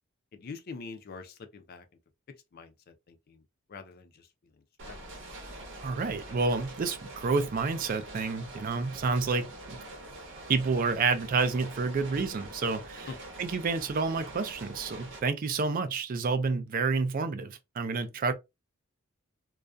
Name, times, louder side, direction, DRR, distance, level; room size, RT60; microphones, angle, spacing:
voice 1, 0.3-1.9 2.5-3.4 3.7-5.0 13.1-13.2, left 4 dB, 45° left, 0.4 m, -45 dB
sound 1, 4.8-15.2, right 1 dB, 55° right, 0.7 m, -45 dB
voice 2, 5.8-9.8 10.5-13.1 13.4-18.3, right 4 dB, 40° right, 0.3 m, -29 dB
2.3 x 2.1 x 2.5 m
head